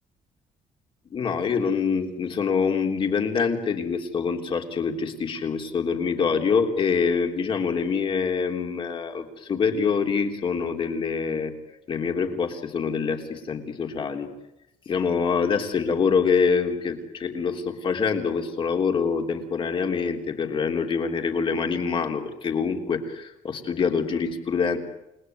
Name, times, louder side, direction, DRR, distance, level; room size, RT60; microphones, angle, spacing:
voice 1, 1.1-11.5 11.9-14.3 14.8-24.8, left 5 dB, 40° left, 4 dB, 3.4 m, -25 dB
29.0 x 20.0 x 9.5 m, 0.86 s
cardioid pair, 155°, 14 cm